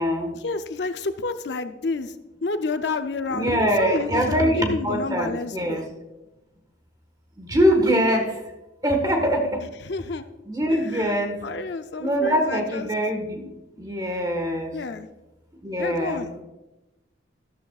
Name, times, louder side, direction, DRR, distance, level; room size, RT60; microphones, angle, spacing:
voice 1, 0.3-2.1 2.4-5.8 9.8-10.2 10.7-11.1 11.4-12.9 14.7-15.1 15.8-16.3, left 3 dB, 65° left, 9 dB, 0.6 m, -29 dB
voice 2, 3.3-5.8 7.4-8.3 8.8-9.6 10.5-11.3 12.0-13.5 13.8-14.7 15.6-16.2, equal, 20° right, 4 dB, 1.4 m, -23 dB
13.0 x 12.0 x 2.4 m, 1.0 s
head